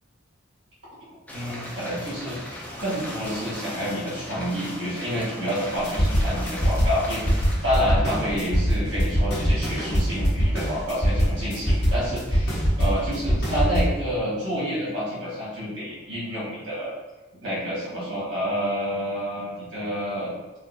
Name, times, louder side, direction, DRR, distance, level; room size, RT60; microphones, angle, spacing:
sound 1, 1.3-7.6, left 1 dB, 10° left, 0.3 m, -37 dB
voice 1, 1.3-16.9 17.4-20.3, equal, 80° right, -8 dB, 1.4 m, -29 dB
sound 2, 5.8-13.8, equal, 55° left, 1.1 m, -22 dB
3.8 x 2.1 x 2.5 m, 1.1 s
head